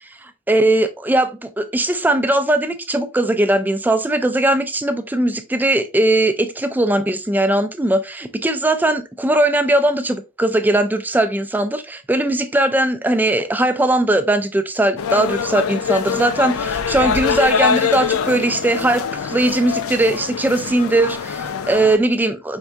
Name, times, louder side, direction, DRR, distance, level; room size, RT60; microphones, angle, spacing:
voice 1, 0.2-22.6, right 1 dB, 10° right, 0.3 m, -19 dB
sound 1, 15.0-22.0, left 6 dB, 85° left, 0.5 m, -23 dB
4.5 x 3.5 x 2.6 m
head